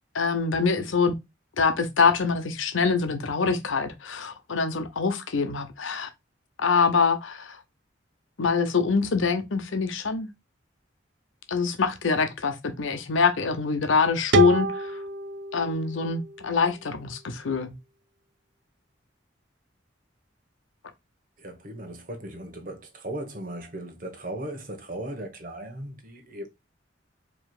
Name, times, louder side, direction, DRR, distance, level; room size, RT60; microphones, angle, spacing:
voice 1, 0.1-1.1 1.6-6.1 6.6-7.6 8.4-10.3 11.5-15.0 15.5-17.8, left 5 dB, 90° left, 0.8 m, -24 dB
sound 1, 14.3-17.2, right 3 dB, 60° right, 0.5 m, -28 dB
voice 2, 21.4-26.5, right 1 dB, 45° right, 1.1 m, -37 dB
4.7 x 3.1 x 2.3 m
head